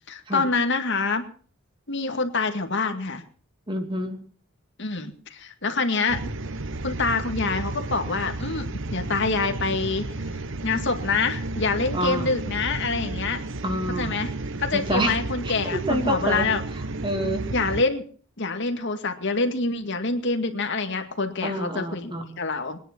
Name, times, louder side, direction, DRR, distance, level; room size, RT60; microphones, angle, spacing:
voice 1, 0.1-1.3 1.9-3.2 4.8-6.3 6.8-10.0 10.6-13.4 14.0-14.3 14.6-16.6 17.5-18.1 18.4-22.8, left 3 dB, 55° left, 7 dB, 2.1 m, -26 dB
voice 2, 3.7-4.2 11.9-12.4 13.6-14.3 14.7-15.2 15.4-15.5 15.9-16.5 17.0-17.4 21.4-22.4, right 1 dB, 25° right, 5 dB, 2.7 m, -27 dB
sound 1, 6.1-17.8, right 2 dB, 60° right, 1.0 m, -32 dB
22.0 x 10.5 x 6.1 m, 0.43 s
head